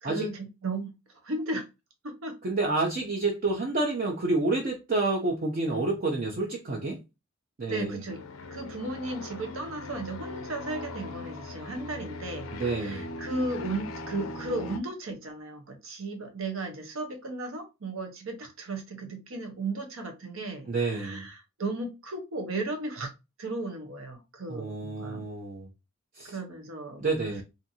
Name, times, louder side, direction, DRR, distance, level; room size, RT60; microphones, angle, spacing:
voice 1, 0.0-0.9 1.2-1.7 2.0-2.4 7.7-8.2 8.5-23.1 23.4-25.3 26.3-27.1, right 2 dB, 80° right, 0.8 m, -35 dB
voice 2, 2.4-7.0 7.6-8.0 12.5-13.1 20.7-21.3 24.5-25.7 26.1-26.4 27.0-27.4, right 3 dB, 40° right, 0.5 m, -29 dB
sound 1, 8.1-14.8, left 2 dB, 85° left, 0.4 m, -40 dB
2.6 x 2.5 x 2.7 m
head